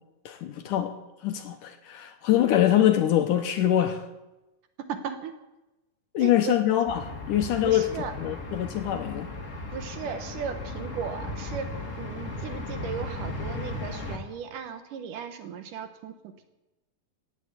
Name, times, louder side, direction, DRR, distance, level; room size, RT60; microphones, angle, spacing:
voice 1, 0.3-1.0 1.2-4.1 6.1-9.3, left 12 dB, 70° left, 2.2 m, -24 dB
voice 2, 4.9-5.3 6.2-6.6 7.6-8.1 9.7-11.7 12.0-16.4, right 7 dB, 65° right, 2.5 m, -36 dB
sound 1, 6.9-14.2, left 2 dB, 35° left, 1.2 m, -36 dB
17.0 x 9.8 x 8.3 m
omnidirectional pair, 4.3 m